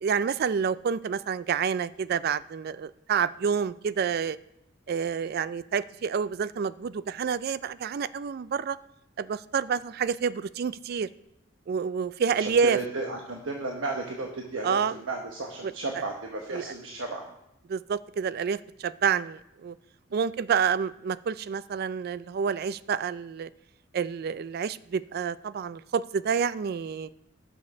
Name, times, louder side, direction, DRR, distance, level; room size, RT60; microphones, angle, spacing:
voice 1, 0.0-4.4 4.9-8.8 9.2-11.1 11.7-12.8 14.6-14.9 15.6-15.7 16.5-16.6 17.7-19.7 20.1-23.5 23.9-27.1, right 6 dB, 50° right, 17 dB, 0.3 m, -28 dB
voice 2, 12.3-17.2, right 3 dB, 75° right, 1 dB, 1.1 m, -33 dB
9.8 x 6.4 x 5.9 m, 0.83 s
head